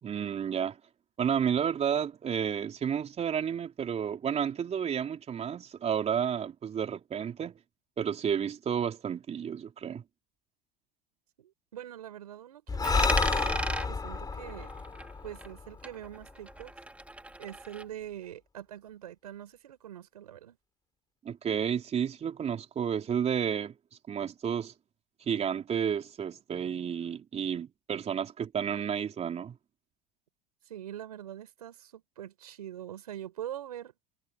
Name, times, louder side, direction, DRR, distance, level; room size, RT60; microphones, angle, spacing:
voice 1, 0.0-0.8 1.2-7.6 8.0-10.0 21.2-23.8 24.1-24.7 25.2-29.6, right 8 dB, 35° right, 3.9 m, -31 dB
voice 2, 11.4-14.7 15.2-16.7 17.4-20.6 30.7-33.9, right 11 dB, 85° right, 5.5 m, -44 dB
Breathing, 12.7-16.2, left 4 dB, 20° left, 6.1 m, -30 dB
Coin (dropping), 12.8-15.6 15.8-17.8, right 1 dB, 5° right, 2.6 m, -37 dB
hypercardioid pair, 85°, 19 cm